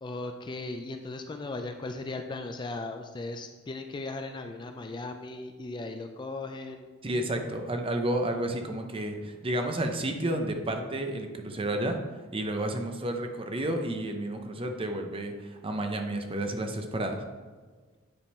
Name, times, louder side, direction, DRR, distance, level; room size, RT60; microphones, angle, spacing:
voice 1, 0.0-6.9, left 2 dB, 20° left, 6 dB, 0.3 m, -37 dB
voice 2, 7.0-12.0 12.3-17.2, right 1 dB, 25° right, 5 dB, 0.6 m, -31 dB
9.7 x 3.7 x 4.2 m, 1.5 s
head